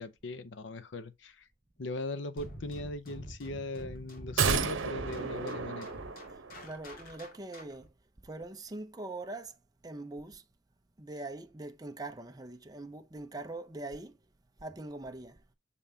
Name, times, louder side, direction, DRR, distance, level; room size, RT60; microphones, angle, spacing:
voice 1, 0.0-1.5 1.8-5.9, left 2 dB, 65° left, 0.7 m, -39 dB
sound 1, 2.4-7.9, equal, 45° left, 2.1 m, -47 dB
sound 2, 4.4-6.7 7.0-7.1, right 5 dB, 80° right, 0.9 m, -32 dB
voice 2, 6.6-7.9 8.2-10.4 11.0-14.2 14.6-15.4, right 2 dB, 20° right, 0.6 m, -42 dB
6.6 x 5.4 x 2.7 m
head